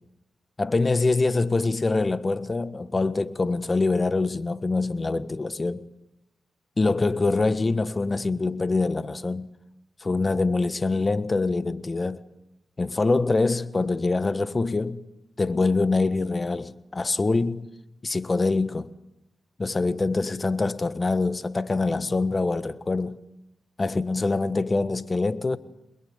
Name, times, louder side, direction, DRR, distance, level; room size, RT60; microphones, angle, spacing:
voice 1, 0.6-5.8 6.8-9.5 10.0-12.2 12.8-15.0 15.4-17.7 18.0-18.9 19.6-23.2 23.8-25.6, left 3 dB, 35° left, 1.5 m, -24 dB
28.0 x 21.5 x 9.7 m
cardioid pair, 60°, 0 cm